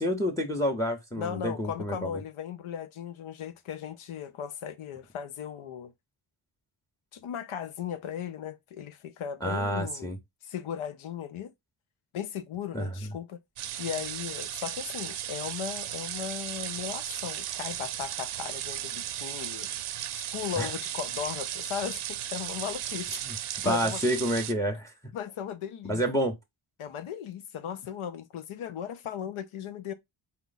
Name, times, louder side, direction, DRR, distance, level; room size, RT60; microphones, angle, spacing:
voice 1, 0.0-2.1 9.4-10.2 12.7-12.9 20.6-20.7 23.2-23.3 23.6-24.9 25.9-26.3, equal, 5° left, 0.9 m, -28 dB
voice 2, 1.2-5.9 7.1-10.1 10.4-11.5 12.1-13.4 13.8-19.7 20.1-24.0 25.1-26.0 26.8-29.9, left 8 dB, 80° left, 0.8 m, -37 dB
sound 1, 13.6-24.5, right 11 dB, 85° right, 0.6 m, -36 dB
4.4 x 2.4 x 4.0 m
cardioid pair, 100°, 49 cm